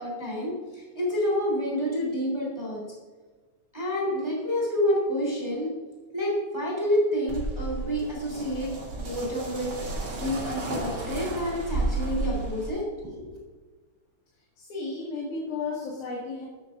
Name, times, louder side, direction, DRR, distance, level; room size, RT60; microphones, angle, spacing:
voice 1, 0.0-2.8 3.7-5.7 6.1-8.7 9.0-13.3, equal, 10° right, -4 dB, 2.8 m, -28 dB
sound 1, 7.3-12.7, right 2 dB, 45° right, 3.4 m, -32 dB
voice 2, 14.6-16.5, left 3 dB, 75° left, -5 dB, 3.4 m, -33 dB
12.0 x 9.7 x 2.5 m, 1.4 s
omnidirectional pair, 3.5 m